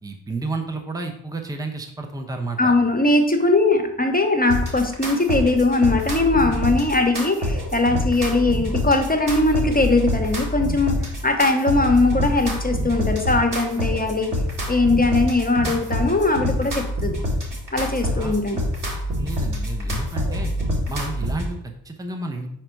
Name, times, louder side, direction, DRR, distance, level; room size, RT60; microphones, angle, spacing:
voice 1, 0.0-2.7 18.1-18.4 19.2-20.5 20.9-22.5, right 3 dB, 10° right, 4 dB, 0.8 m, -31 dB
voice 2, 2.6-11.0 11.2-14.3 14.7-17.2 17.7-18.6, left 2 dB, 20° left, 4 dB, 1.0 m, -20 dB
sound 1, 4.5-21.5, equal, 45° right, 2.3 m, -26 dB
4.9 x 4.5 x 4.5 m, 0.75 s
supercardioid pair, 40°, 42 cm